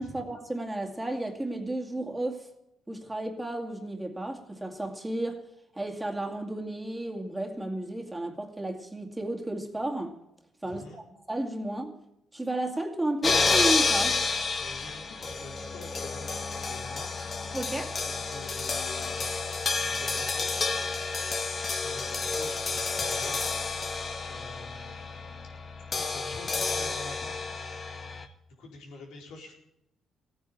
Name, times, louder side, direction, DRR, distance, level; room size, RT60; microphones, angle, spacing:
voice 1, 0.0-2.5 2.9-5.4 5.8-10.2 10.6-12.0 12.3-14.2 17.5-18.0, right 1 dB, 10° right, 2.3 m, -33 dB
voice 2, 10.6-11.0 14.6-17.1 18.0-20.8 21.8-23.4 23.8-25.5 25.8-27.4 28.5-29.5, left 3 dB, 85° left, 4.4 m, -47 dB
sound 1, 13.2-28.3, left 4 dB, 40° left, 1.7 m, -30 dB
15.5 x 9.6 x 8.7 m
cardioid pair, 90°, 0 cm